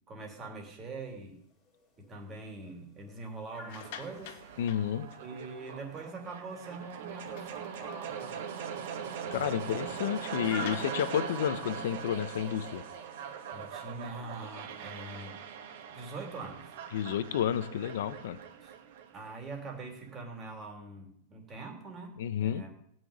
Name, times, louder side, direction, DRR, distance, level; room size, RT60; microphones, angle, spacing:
voice 1, 0.1-1.4 2.0-4.4 5.2-8.4 9.2-9.8 13.5-15.4 15.9-16.8 18.6-18.7 19.1-22.7, right 3 dB, 15° right, 3 dB, 2.8 m, -43 dB
sound 1, 1.0-12.8, equal, 20° left, 2.8 m, -52 dB
sound 2, 3.5-5.6 6.1-6.3 6.6-6.7 7.1-8.2 8.6-8.8 9.1-9.2 10.5-13.9, left 9 dB, 45° left, 1.6 m, -50 dB
sound 3, 3.8-19.9, right 7 dB, 55° right, 2.3 m, -41 dB
voice 2, 4.6-5.1 9.3-12.8 16.9-18.4 22.2-22.6, left 10 dB, 60° left, 13 dB, 1.1 m, -31 dB
16.5 x 6.3 x 9.6 m, 0.70 s
supercardioid pair, 170°, 0 cm